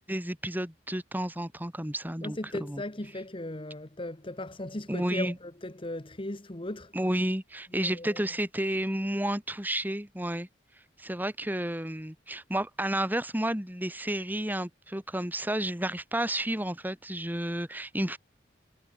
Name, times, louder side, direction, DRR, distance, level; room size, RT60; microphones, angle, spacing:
voice 1, 0.1-2.8 4.9-5.4 6.9-10.5 11.0-18.2, right 1 dB, 10° right, 3.4 m, -31 dB
voice 2, 2.2-5.3 5.6-6.9 7.8-8.1, left 1 dB, 30° left, 1.6 m, -37 dB
head